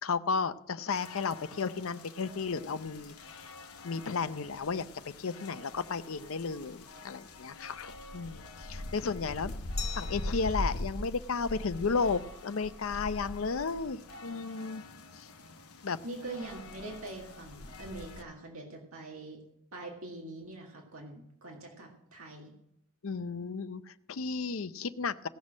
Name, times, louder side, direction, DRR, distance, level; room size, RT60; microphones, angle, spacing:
voice 1, 0.0-3.5 3.8-9.5 9.9-14.8 15.1-15.3 15.8-16.0 23.0-25.3, left 4 dB, 70° left, 13 dB, 0.6 m, -34 dB
sound 1, 0.9-18.2, left 1 dB, 90° left, 0.9 m, -42 dB
Glass, 9.8-12.5, left 8 dB, 30° left, 1.1 m, -46 dB
voice 2, 16.0-19.4 19.7-22.5, right 2 dB, 75° right, 0 dB, 1.9 m, -43 dB
17.0 x 6.3 x 6.3 m, 0.77 s
head